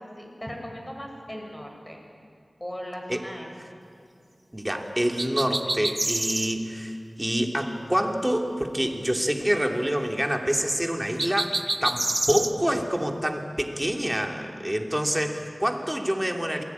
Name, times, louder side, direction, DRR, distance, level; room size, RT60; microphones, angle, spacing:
voice 1, 0.0-2.0 2.6-3.8 14.4-14.9, equal, 10° left, 1 dB, 6.9 m, -39 dB
voice 2, 4.5-11.6 11.8-16.6, equal, 10° right, 3 dB, 3.1 m, -27 dB
sound 1, 5.2-6.6 11.2-12.5, right 1 dB, 35° right, 1.5 m, -27 dB
27.0 x 21.5 x 9.8 m, 2.3 s
wide cardioid pair, 55°, 0 cm